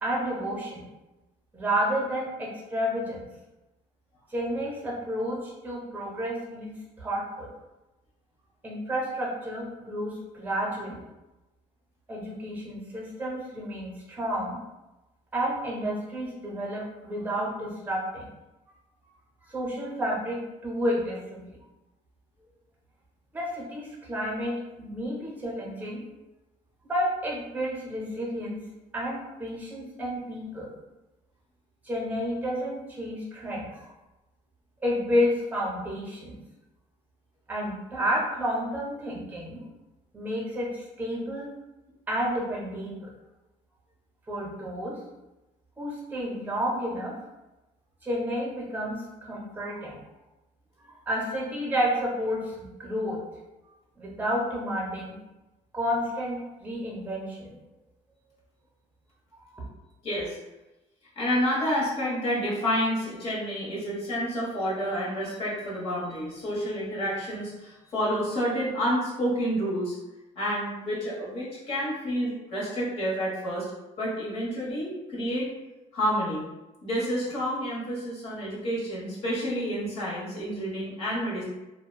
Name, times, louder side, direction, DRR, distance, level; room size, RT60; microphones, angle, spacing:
voice 1, 0.0-0.8 1.5-3.3 4.3-6.7 7.0-7.5 8.6-11.0 12.1-14.6 15.3-18.3 19.5-21.4 23.3-26.0 26.9-28.6 28.9-30.7 31.8-33.9 34.8-36.4 37.5-39.6 40.1-41.5 42.1-43.1 44.3-44.9 45.8-47.1 48.0-50.0 51.1-53.2 54.0-55.2 55.7-57.6 59.5-59.7, equal, 10° right, -4 dB, 0.7 m, -30 dB
voice 2, 60.0-60.4 61.2-69.9 70.3-73.7 74.0-75.5 75.9-76.5 76.8-81.4, equal, 45° left, -6 dB, 1.0 m, -29 dB
2.8 x 2.1 x 2.3 m, 1.0 s
cardioid pair, 150°, 14 cm